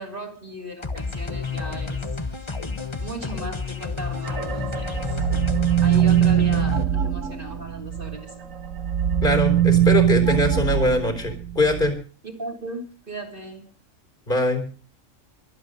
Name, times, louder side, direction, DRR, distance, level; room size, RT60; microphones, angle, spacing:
voice 1, 0.0-2.0 3.0-5.2 5.8-8.4 12.2-13.7, equal, 40° right, 1 dB, 3.1 m, -37 dB
sound 1, 0.8-6.8, left 4 dB, 25° left, 1.1 m, -30 dB
sound 2, 4.2-8.2 8.5-11.9, right 10 dB, 80° right, 1.6 m, -22 dB
voice 2, 9.2-11.9 14.3-14.6, left 1 dB, 40° left, 6 dB, 4.2 m, -22 dB
23.5 x 8.6 x 5.2 m, 0.39 s
omnidirectional pair, 1.4 m